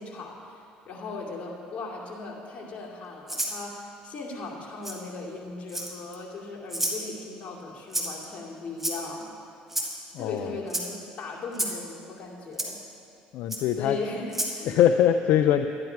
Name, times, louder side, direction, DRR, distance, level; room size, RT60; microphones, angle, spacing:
voice 1, 0.0-9.3 10.2-12.8 13.8-14.8, left 3 dB, 45° left, -2 dB, 2.5 m, -38 dB
Rattle (instrument), 3.3-3.6 4.8-5.0 5.7-6.1 6.7-7.0 7.9-8.2 8.8-9.2 9.7-9.9 10.7-10.9 11.5-11.8 12.6-12.7 13.5-13.6 14.3-14.5, right 1 dB, 10° right, 1.8 m, -30 dB
voice 2, 10.1-10.5 13.3-14.0 14.6-15.7, left 10 dB, 70° left, 8 dB, 0.4 m, -22 dB
11.5 x 11.0 x 4.6 m, 2.6 s
supercardioid pair, 90°, 3 cm